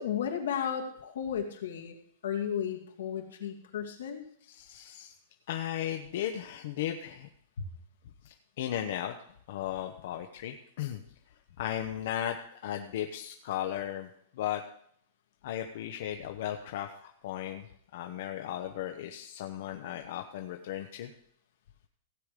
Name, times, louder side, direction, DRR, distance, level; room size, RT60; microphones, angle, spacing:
voice 1, 0.0-2.0 2.2-4.2 7.6-7.7, left 8 dB, 85° left, 2 dB, 2.6 m, -34 dB
voice 2, 4.5-5.1 5.5-7.3 8.2-9.1 9.5-11.0 11.6-12.4 12.6-14.1 14.3-14.6 15.4-17.7 17.9-21.1, left 11 dB, 55° left, 4 dB, 1.0 m, -36 dB
16.5 x 7.9 x 5.1 m, 0.64 s
supercardioid pair, 165°, 0 cm